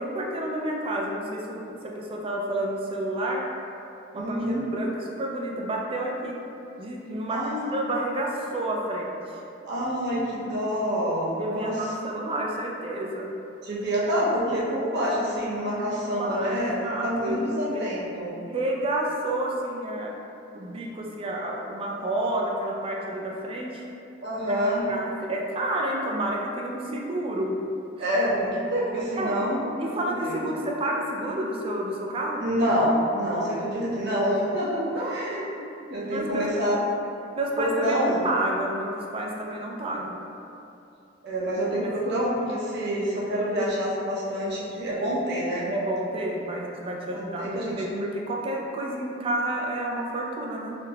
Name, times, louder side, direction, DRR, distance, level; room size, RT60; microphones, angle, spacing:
voice 1, 0.0-3.4 4.1-6.4 6.8-9.1 11.4-13.3 15.9-17.4 17.7-17.8 18.5-20.1 20.5-23.8 24.4-24.5 24.9-27.6 29.2-29.4 29.8-32.4 34.9-35.5 36.0-36.5 37.4-40.2 41.8-41.9 45.7-50.8, right 1 dB, 30° right, -1 dB, 0.3 m, -30 dB
voice 2, 4.1-4.6 7.3-7.7 9.7-11.9 13.6-18.3 24.2-24.9 28.0-29.7 30.0-30.5 32.4-35.5 35.9-36.8 37.6-38.3 41.2-45.7 47.1-48.1, equal, 55° right, -7 dB, 0.7 m, -27 dB
3.6 x 2.7 x 2.3 m, 2.7 s
head